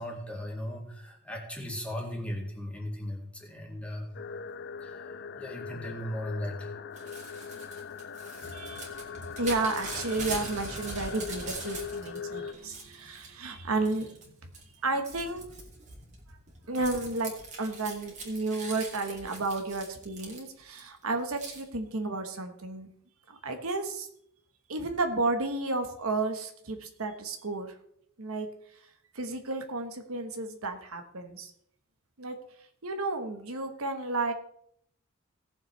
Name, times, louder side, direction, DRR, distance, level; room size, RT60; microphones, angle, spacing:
voice 1, 0.0-4.1 4.8-5.1 5.4-6.7, left 1 dB, 5° left, -1 dB, 2.1 m, -37 dB
sound 1, 4.1-12.5, left 6 dB, 55° left, 0.6 m, -41 dB
Crumpling crinkling / Tearing, 7.0-12.2 12.5-13.3 13.8-14.3 14.5-20.8 21.4-21.6, right 3 dB, 35° right, 2.4 m, -42 dB
voice 2, 8.4-8.9 9.2-14.3 14.8-15.5 16.3-16.4 16.7-22.9 23.3-24.1 24.7-27.7 28.2-28.5 29.1-31.5 32.2-32.4 32.8-34.3, right 3 dB, 70° right, 6 dB, 1.2 m, -32 dB
18.0 x 7.2 x 3.2 m, 0.69 s
head